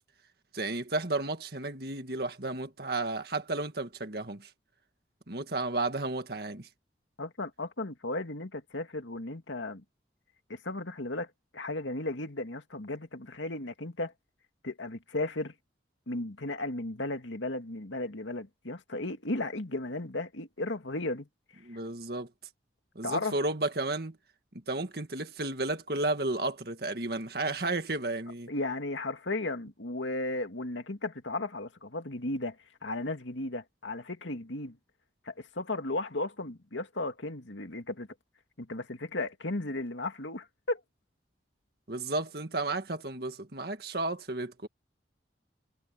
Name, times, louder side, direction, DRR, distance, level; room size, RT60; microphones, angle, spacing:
voice 1, 0.5-4.5 5.3-6.7 21.6-22.3 23.0-24.2 24.7-28.5 41.9-44.7, right 2 dB, 55° right, 1.9 m, -33 dB
voice 2, 7.2-9.8 10.5-14.1 14.6-15.5 16.1-21.3 23.0-23.4 28.5-32.6 32.8-34.8 35.3-38.1 38.6-40.8, left 2 dB, 90° left, 2.3 m, -35 dB
head